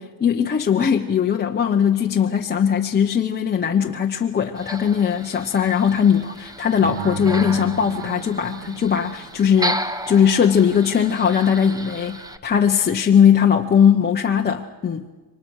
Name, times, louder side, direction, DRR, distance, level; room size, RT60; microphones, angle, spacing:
voice 1, 0.0-15.0, left 8 dB, 25° left, 1 dB, 0.8 m, -19 dB
sound 1, 4.6-12.4, right 1 dB, 10° right, 0.8 m, -33 dB
sound 2, 6.8-9.7, right 6 dB, 65° right, 2.2 m, -34 dB
28.0 x 24.0 x 6.4 m, 1.3 s
cardioid pair, 175°, 41 cm